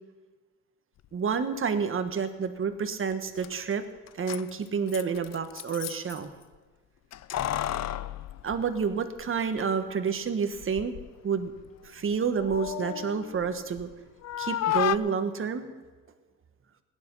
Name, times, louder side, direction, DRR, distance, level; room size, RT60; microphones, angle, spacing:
voice 1, 1.1-3.8 4.2-6.3 8.4-10.9 11.2-11.5 11.8-13.9 14.4-15.7, right 6 dB, 40° right, 9 dB, 1.4 m, -29 dB
Keys jangling, 3.1-3.2 3.4-3.5 4.1-6.2 7.1-9.3 9.6-9.7 10.5-11.1 11.5-13.9 14.2-15.0, left 12 dB, 55° left, 0.5 m, -33 dB
17.5 x 10.5 x 5.5 m, 1.3 s
cardioid pair, 105°, 33 cm